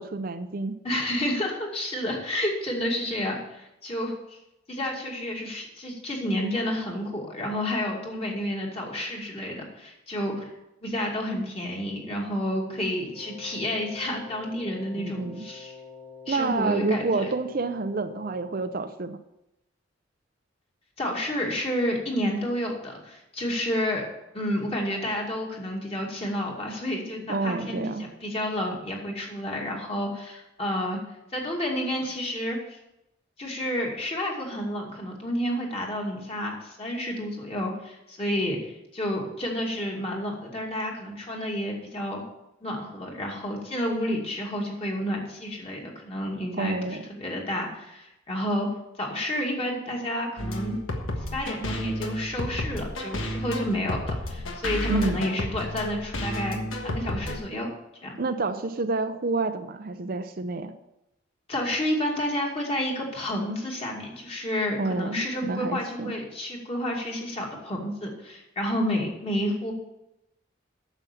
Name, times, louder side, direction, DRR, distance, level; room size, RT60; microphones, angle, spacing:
voice 1, 0.0-0.8 14.9-15.4 16.3-19.2 27.3-28.1 46.6-47.0 54.9-55.2 58.2-60.7 64.8-66.2, right 3 dB, 45° right, 8 dB, 0.6 m, -28 dB
voice 2, 0.8-4.4 4.7-10.5 10.8-15.7 16.3-17.3 21.0-24.0 24.3-31.0 31.3-32.6 33.4-38.6 38.9-42.2 42.6-48.7 49.0-50.8 51.3-57.7 58.0-58.2 61.5-69.7, left 1 dB, 30° left, -1 dB, 2.3 m, -30 dB
Wind instrument woodwind instrument, 13.1-18.8, left 5 dB, 45° left, 5.0 m, -46 dB
sound 1, 50.4-57.4, left 1 dB, 90° left, 1.5 m, -31 dB
9.1 x 7.2 x 7.0 m, 0.90 s
head